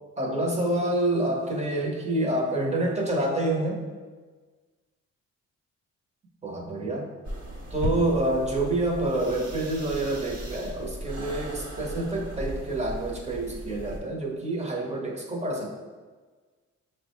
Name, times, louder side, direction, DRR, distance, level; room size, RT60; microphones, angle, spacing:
voice 1, 0.2-3.8 6.4-7.1 7.7-15.8, right 1 dB, 20° right, -2 dB, 0.9 m, -27 dB
sound 1, 7.2-14.0, equal, 60° right, 1.0 m, -36 dB
5.9 x 2.1 x 3.0 m, 1.4 s
cardioid pair, 90°, 30 cm